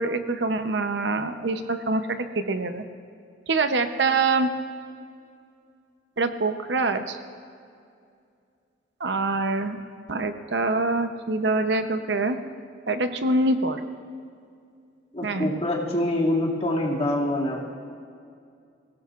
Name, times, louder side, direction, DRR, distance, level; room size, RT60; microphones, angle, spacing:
voice 1, 0.0-2.8 3.5-4.5 6.2-7.2 9.0-9.8 10.1-12.4 12.9-13.8 15.2-15.5, right 3 dB, 75° right, 8 dB, 0.8 m, -25 dB
voice 2, 15.1-17.6, left 1 dB, 35° left, -3 dB, 2.3 m, -25 dB
24.5 x 16.5 x 2.5 m, 2.4 s
head